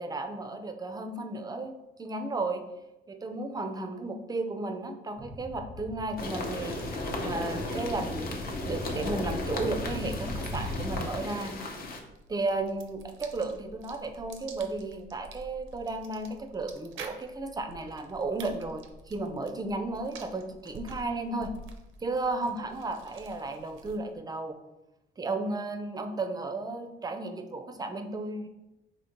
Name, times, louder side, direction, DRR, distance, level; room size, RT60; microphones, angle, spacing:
voice 1, 0.0-1.7 2.0-2.6 3.1-11.5 12.3-21.5 22.0-24.6 25.2-28.5, right 2 dB, 20° right, 7 dB, 0.4 m, -34 dB
sound 1, 5.2-11.1, left 1 dB, 75° left, 1.0 m, -39 dB
sound 2, 6.0-24.2, right 3 dB, 80° right, 0.5 m, -49 dB
sound 3, 6.2-12.0, left 2 dB, 50° left, 0.7 m, -35 dB
4.3 x 3.0 x 2.9 m, 0.97 s
cardioid pair, 90°, 20 cm